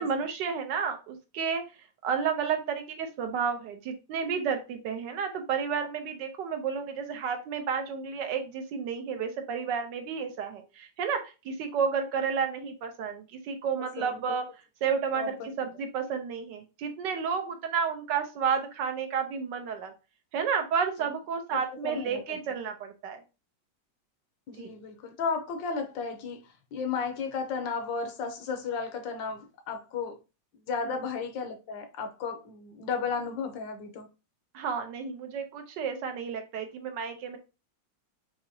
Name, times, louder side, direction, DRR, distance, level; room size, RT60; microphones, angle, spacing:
voice 1, 0.0-1.6 2.0-14.5 14.8-19.9 20.3-23.2 24.6-24.7 30.8-30.9 34.5-37.4, right 6 dB, 75° right, 1.4 m, -31 dB
voice 2, 13.8-14.2 15.1-15.5 21.5-22.2 24.5-30.2 30.7-34.1, left 5 dB, 85° left, 1.5 m, -34 dB
5.8 x 3.0 x 2.7 m
omnidirectional pair, 2.0 m